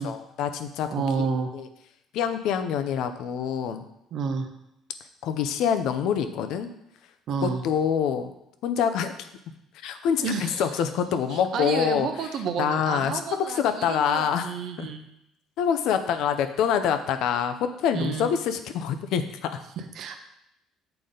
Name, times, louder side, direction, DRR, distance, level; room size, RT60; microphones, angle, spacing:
voice 1, 0.0-1.3 1.5-1.7 2.1-3.8 5.2-6.7 7.4-8.3 8.6-9.3 9.8-12.3 12.6-14.9 15.6-19.2 19.5-19.6, left 8 dB, 75° left, 9 dB, 0.5 m, -26 dB
voice 2, 0.9-1.5 4.1-4.5 7.3-7.6 10.2-10.7 11.3-15.0 17.9-18.3 19.8-20.2, right 5 dB, 60° right, 7 dB, 0.7 m, -30 dB
6.8 x 3.9 x 3.8 m, 0.81 s
cardioid pair, 100°, 0 cm